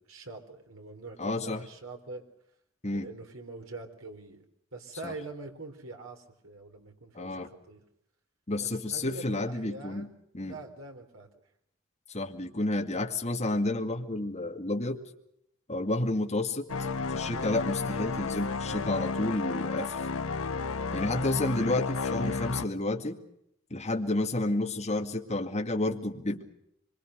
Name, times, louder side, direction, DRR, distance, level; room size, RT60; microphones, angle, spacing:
voice 1, 0.0-2.3 3.0-4.4 4.7-7.9 8.6-11.3, right 2 dB, 70° right, 4 dB, 3.8 m, -44 dB
voice 2, 1.2-1.6 2.8-3.1 5.0-5.1 7.1-7.5 8.5-10.1 10.3-10.6 12.1-15.0 15.7-16.7 17.1-20.0 20.9-23.2 23.7-26.4, left 2 dB, 30° left, 2 dB, 2.3 m, -30 dB
sound 1, 16.7-22.7, left 4 dB, 80° left, 1.0 m, -32 dB
25.5 x 24.5 x 6.5 m, 0.75 s
head